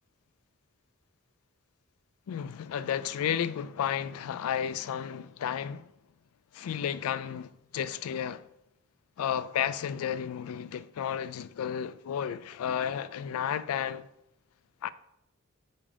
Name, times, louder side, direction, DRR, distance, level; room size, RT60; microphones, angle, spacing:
voice 1, 2.3-5.9 6.5-8.4 9.2-14.1 14.8-14.9, left 9 dB, 85° left, 0.3 m, -32 dB
5.5 x 5.0 x 4.9 m
head